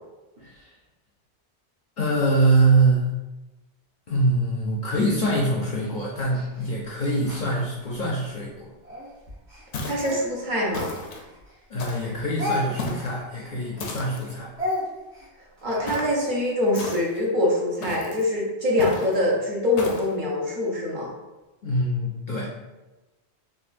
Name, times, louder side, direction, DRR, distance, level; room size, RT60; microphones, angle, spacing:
voice 1, 0.4-0.7 2.0-3.1 4.1-8.7 11.7-14.5 21.6-22.7, right 2 dB, 55° left, -3 dB, 0.5 m, -24 dB
Speech, 5.1-8.3 8.8-11.6 11.9-16.3, left 1 dB, 75° right, 1.7 m, -35 dB
sound 1, 9.7-10.2 10.7-11.2 11.8-12.2 12.8-13.2 13.8-14.3 15.9-16.2 16.7-17.3 17.8-18.2 18.8-19.2 19.8-20.1, left 2 dB, 85° left, 0.9 m, -34 dB
voice 2, 9.8-10.9 15.6-21.1, left 1 dB, 50° right, -4 dB, 0.7 m, -24 dB
3.8 x 2.3 x 2.4 m, 1.1 s
omnidirectional pair, 1.1 m